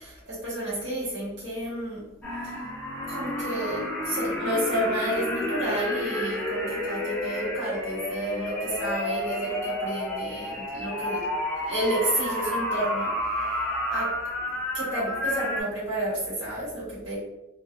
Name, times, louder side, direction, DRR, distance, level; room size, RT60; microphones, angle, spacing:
voice 1, 0.0-2.0 2.4-2.6 3.1-11.2 11.7-14.1 14.7-17.2, right 1 dB, 60° right, -9 dB, 1.1 m, -31 dB
sound 1, 2.2-15.6, left 1 dB, 5° left, 0.4 m, -30 dB
2.4 x 2.1 x 2.4 m, 0.98 s
head